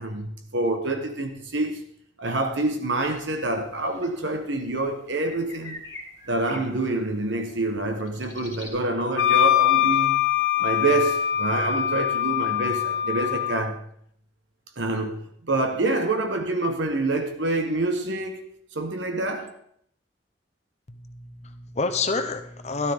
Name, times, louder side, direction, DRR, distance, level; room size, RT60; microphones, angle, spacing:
voice 1, 0.0-1.8 2.2-5.8 6.3-10.3 10.6-13.8 14.8-18.4 18.7-19.6, right 2 dB, 70° right, 1.2 m, -27 dB
sound 1, 3.0-8.7, left 2 dB, 20° left, 3.1 m, -46 dB
Wind instrument woodwind instrument, 9.2-13.7, left 12 dB, 80° left, 0.9 m, -23 dB
voice 2, 20.9-22.9, left 3 dB, 35° left, 0.8 m, -28 dB
13.0 x 12.0 x 3.6 m
head